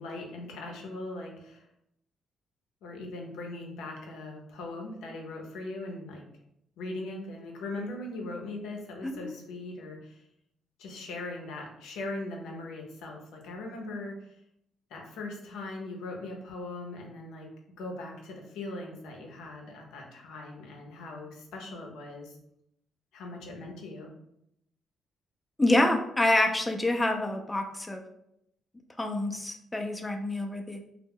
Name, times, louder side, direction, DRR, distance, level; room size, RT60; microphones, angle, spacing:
voice 1, 0.0-1.7 2.8-6.2 6.8-10.3 10.8-14.3 14.9-17.5 17.8-22.4 23.1-24.1, left 2 dB, 90° left, 1 dB, 0.5 m, -40 dB
voice 2, 25.6-28.0 29.0-30.8, left 1 dB, 15° left, 4 dB, 0.3 m, -27 dB
2.0 x 2.0 x 3.5 m, 0.77 s
cardioid pair, 90°, 0 cm